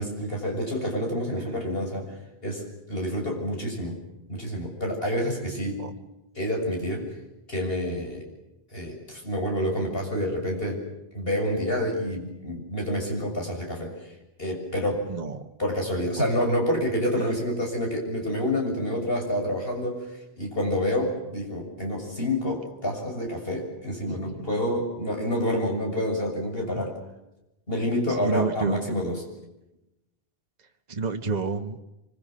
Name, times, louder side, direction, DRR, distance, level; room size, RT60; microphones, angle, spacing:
voice 1, 0.0-2.1 2.4-4.0 4.3-5.8 6.4-7.1 7.5-8.2 8.7-10.8 11.1-13.9 14.4-15.0 15.6-20.0 20.4-26.9 27.7-29.1, equal, 65° left, 1 dB, 7.2 m, -28 dB
voice 2, 15.1-15.4 16.1-16.2 17.2-17.3 24.1-24.5 26.7-26.8 28.2-28.8 30.9-31.8, right 4 dB, 45° right, 5 dB, 1.4 m, -30 dB
25.5 x 25.5 x 7.6 m, 0.93 s
omnidirectional pair, 1.1 m